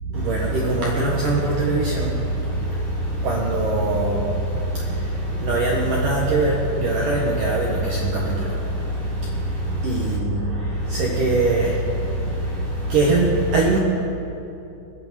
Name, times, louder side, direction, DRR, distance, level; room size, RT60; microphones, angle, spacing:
voice 1, 0.1-13.8, right 2 dB, 70° right, -3 dB, 2.1 m, -22 dB
21.0 x 8.3 x 7.4 m, 2.8 s
omnidirectional pair, 5.6 m